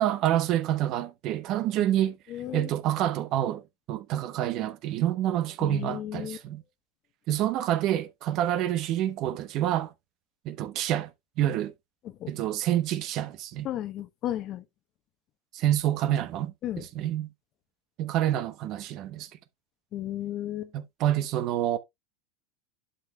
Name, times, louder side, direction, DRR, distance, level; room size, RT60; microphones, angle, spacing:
voice 1, 0.0-2.2 2.5-3.6 3.9-6.6 7.3-9.9 10.4-11.1 11.4-11.7 12.3-13.7 15.5-17.3 18.0-19.3 20.7-21.8, right 12 dB, 50° right, 0.9 m, -27 dB
voice 2, 2.3-2.7 5.6-6.4 12.0-12.3 13.6-14.6 16.6-16.9 19.9-20.7, left 12 dB, 45° left, 0.9 m, -34 dB
11.0 x 5.4 x 2.2 m
hypercardioid pair, 95°, 0 cm